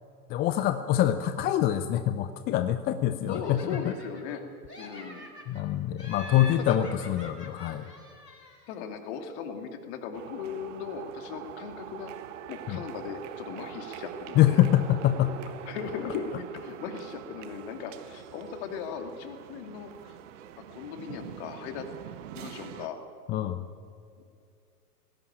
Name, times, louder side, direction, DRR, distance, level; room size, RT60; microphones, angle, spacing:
voice 1, 0.3-3.9 5.5-7.9 12.7-12.8 14.4-15.4 23.3-23.6, left 12 dB, 20° left, 11 dB, 0.6 m, -25 dB
Laughter, 3.3-4.4 4.7-5.6 6.0-8.8, left 1 dB, 85° left, 4.0 m, -45 dB
voice 2, 3.3-4.4 4.8-5.3 6.6-6.8 8.7-12.1 12.5-14.6 15.7-20.2 20.6-21.9 22.3-23.0, left 6 dB, 45° left, 6 dB, 2.7 m, -38 dB
sound 1, 10.1-22.9, right 10 dB, 50° right, 1.4 m, -44 dB
19.5 x 16.5 x 8.7 m, 2.4 s
figure-of-eight pair, 100°, 48 cm